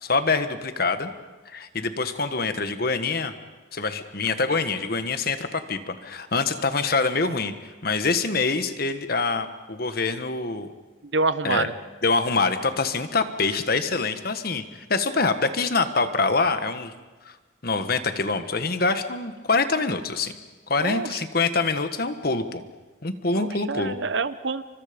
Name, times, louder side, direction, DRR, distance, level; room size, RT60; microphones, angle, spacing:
voice 1, 0.0-1.1 1.5-3.3 3.7-7.5 7.8-10.7 11.4-11.7 12.0-14.6 14.9-16.9 17.6-20.3 20.7-22.6 23.0-24.0, left 4 dB, 50° left, 10 dB, 1.4 m, -25 dB
voice 2, 11.1-11.7 20.8-21.1 23.3-24.6, right 3 dB, 70° right, 14 dB, 0.9 m, -26 dB
30.0 x 24.5 x 5.2 m, 1.3 s
head